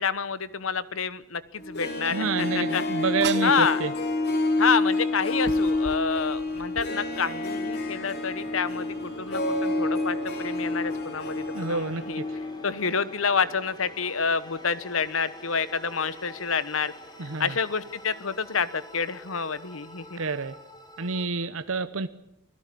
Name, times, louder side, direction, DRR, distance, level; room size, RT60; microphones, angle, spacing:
voice 1, 0.0-2.8 3.4-3.8 4.6-12.2 12.6-16.9 17.4-20.2, left 5 dB, 75° left, 16 dB, 1.2 m, -28 dB
Harp, 1.6-12.6 12.9-13.0, left 2 dB, 55° left, 4.2 m, -28 dB
sound 1, 2.0-3.6 4.6-4.7 5.2-6.9, right 6 dB, 55° right, 1.2 m, -39 dB
voice 2, 2.1-3.9 11.5-12.0 17.2-17.6 20.2-20.6 21.0-22.1, right 4 dB, 80° right, 12 dB, 0.9 m, -28 dB
sound 2, 3.5-21.3, left 1 dB, 20° left, 3.4 m, -47 dB
25.0 x 16.5 x 8.6 m, 0.77 s
head